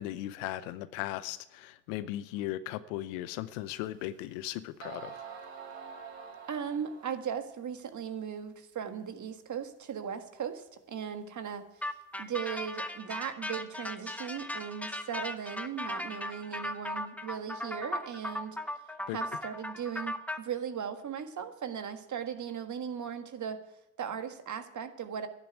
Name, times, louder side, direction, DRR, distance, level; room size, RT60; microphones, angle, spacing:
voice 1, 0.0-5.2 19.1-19.2, left 14 dB, 85° left, 15 dB, 0.7 m, -37 dB
sound 1, 3.7-3.8 4.5-4.6 4.8-7.3, right 6 dB, 90° right, 2.2 m, -46 dB
voice 2, 6.5-11.6 12.2-18.6 19.1-23.6 24.0-25.3, right 8 dB, 50° right, 8 dB, 1.7 m, -38 dB
sound 2, 11.8-20.4, left 1 dB, 5° left, 1.2 m, -37 dB
11.0 x 10.0 x 9.1 m, 0.90 s
hypercardioid pair, 55°, 38 cm